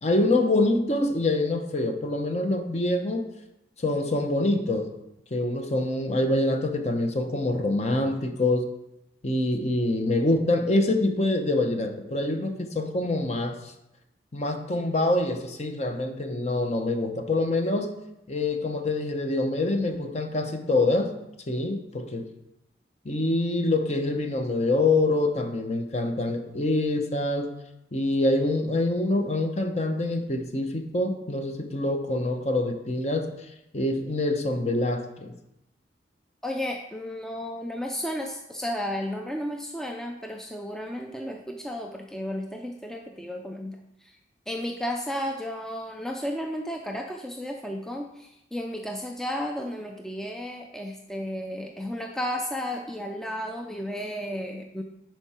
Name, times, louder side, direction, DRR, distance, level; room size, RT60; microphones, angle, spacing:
voice 1, 0.0-3.3 3.8-4.9 5.3-8.7 9.2-13.7 14.3-18.0 18.3-21.2 21.5-22.3 23.0-27.5 27.9-33.3 33.7-35.3, left 2 dB, 40° left, 5 dB, 0.8 m, -25 dB
voice 2, 36.4-44.2 44.5-54.8, equal, 5° left, 2 dB, 0.4 m, -33 dB
10.5 x 4.6 x 4.3 m, 0.86 s
head